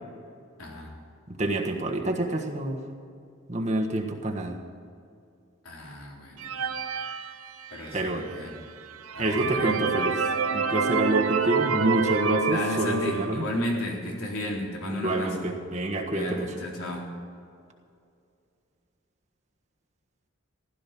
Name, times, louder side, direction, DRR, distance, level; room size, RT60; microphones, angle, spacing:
voice 1, 0.6-1.0 5.6-6.8 7.7-8.8 9.2-9.9 12.5-15.5 16.1-17.1, left 1 dB, 85° left, -2 dB, 3.9 m, -34 dB
voice 2, 1.4-2.8 3.5-4.6 7.9-8.2 9.2-10.1 10.5-13.4 15.0-16.5, right 1 dB, 35° right, 1 dB, 1.4 m, -27 dB
sound 1, 6.4-8.0 8.6-8.7 9.0-13.6, right 5 dB, 85° right, 1.0 m, -28 dB
16.0 x 12.5 x 6.0 m, 2.4 s
head